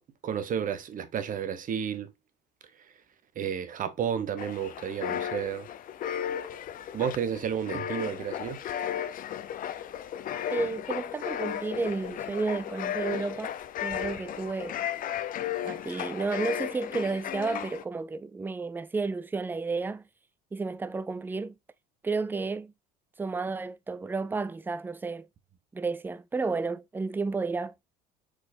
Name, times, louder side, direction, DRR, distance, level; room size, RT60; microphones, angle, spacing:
voice 1, 0.2-2.1 3.4-5.7 6.9-8.6, right 8 dB, 40° right, 1.0 m, -31 dB
sound 1, 4.4-17.8, left 10 dB, 40° left, 0.6 m, -35 dB
voice 2, 10.5-13.6 13.8-14.8 15.6-20.0 20.5-21.5 22.0-22.7 23.2-25.3 25.7-27.7, right 4 dB, 10° right, 0.4 m, -32 dB
4.7 x 4.0 x 2.5 m
supercardioid pair, 85°, 21 cm